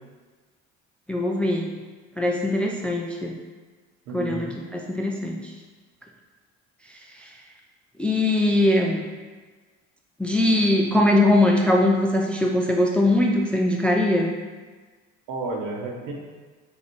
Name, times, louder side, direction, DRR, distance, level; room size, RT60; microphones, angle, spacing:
voice 1, 1.1-1.7 2.2-3.4 4.1-5.4 7.2-7.3 8.0-9.0 10.2-14.3, left 1 dB, 5° left, 0 dB, 0.5 m, -21 dB
voice 2, 4.1-4.5 15.3-16.1, right 3 dB, 65° right, -1 dB, 1.1 m, -31 dB
3.9 x 2.9 x 4.7 m, 1.4 s
hypercardioid pair, 60°, 37 cm